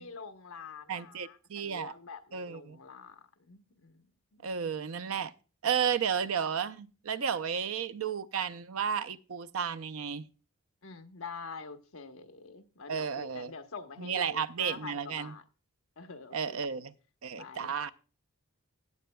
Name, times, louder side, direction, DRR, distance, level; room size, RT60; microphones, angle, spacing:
voice 1, 0.0-4.0 4.3-4.4 10.8-15.4 16.0-16.7 17.3-17.7, left 5 dB, 70° left, 1.0 m, -46 dB
voice 2, 0.9-1.9 2.3-2.8 4.4-5.3 5.6-10.3 12.9-13.5 14.0-15.3 16.3-16.9 17.2-17.9, right 7 dB, 70° right, 0.5 m, -33 dB
17.0 x 7.8 x 2.2 m
head